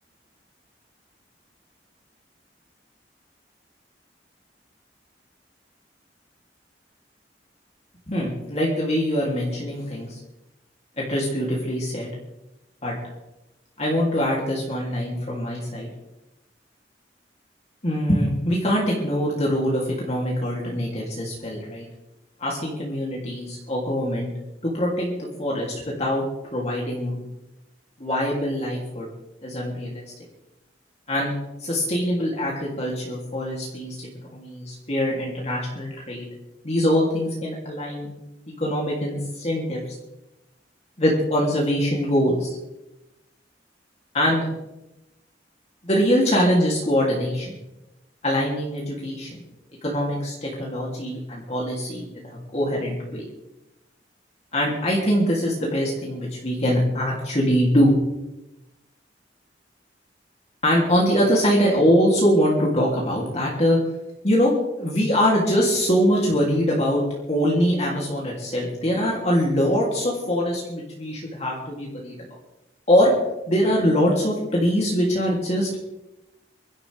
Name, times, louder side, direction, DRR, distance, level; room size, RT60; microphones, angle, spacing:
voice 1, 8.1-10.2 11.0-12.1 12.8-12.9 13.8-15.9 17.8-21.9 22.4-24.3 24.6-26.2 26.5-27.2 28.0-29.1 29.4-30.0 31.1-31.3 31.6-34.0 34.2-36.3 36.6-38.1 38.6-39.8 41.0-42.5 44.1-44.5 45.8-47.5 48.2-49.3 49.8-53.2 54.5-57.9 60.6-63.8 64.2-72.1 72.9-73.1 73.5-75.8, equal, 35° left, -3 dB, 3.0 m, -23 dB
25.0 x 12.5 x 3.5 m, 0.95 s
head